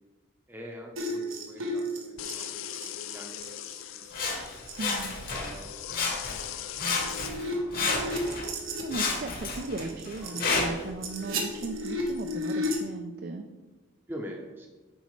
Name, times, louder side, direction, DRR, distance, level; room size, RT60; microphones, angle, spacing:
voice 1, 0.5-4.0 4.3-4.6 5.0-5.8 6.4-6.8 7.0-8.7 9.7-10.0 10.2-10.4 14.1-14.7, equal, 10° right, 0 dB, 0.7 m, -46 dB
sound 1, 1.0-3.8 4.1-4.3 4.7-5.0 5.5-5.6 6.2-6.3 6.7-10.4 10.8-12.8, equal, 80° right, 1.2 m, -34 dB
sound 2, 2.2-7.3, left 11 dB, 80° left, 0.4 m, -40 dB
Sawing, 4.1-5.6 5.9-6.5 6.8-8.5 8.9-10.9 11.6-11.7, left 3 dB, 45° left, 1.1 m, -31 dB
voice 2, 4.8-5.2 8.4-8.5 8.8-13.5, right 3 dB, 50° right, 6 dB, 0.4 m, -37 dB
7.9 x 5.3 x 3.2 m, 1.2 s
head